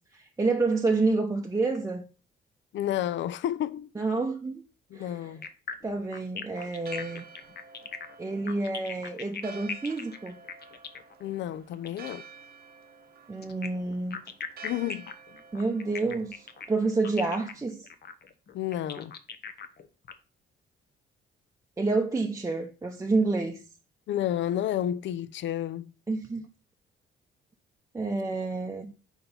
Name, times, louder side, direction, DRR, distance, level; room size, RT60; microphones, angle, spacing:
voice 1, 0.1-2.0 4.0-4.6 4.9-5.3 5.8-7.3 8.2-10.4 13.3-14.2 15.5-17.9 21.8-23.6 26.1-26.5 27.9-28.9, right 3 dB, 15° right, 0.6 m, -29 dB
voice 2, 2.7-3.9 4.9-5.4 11.2-12.3 14.6-15.1 18.5-19.1 24.1-25.9, left 11 dB, 70° left, 0.5 m, -31 dB
sound 1, 5.4-12.2 13.4-20.1, left 6 dB, 55° left, 0.8 m, -40 dB
Church bell, 6.6-16.8, right 4 dB, 50° right, 0.8 m, -50 dB
4.5 x 4.3 x 5.1 m
cardioid pair, 90°, 20 cm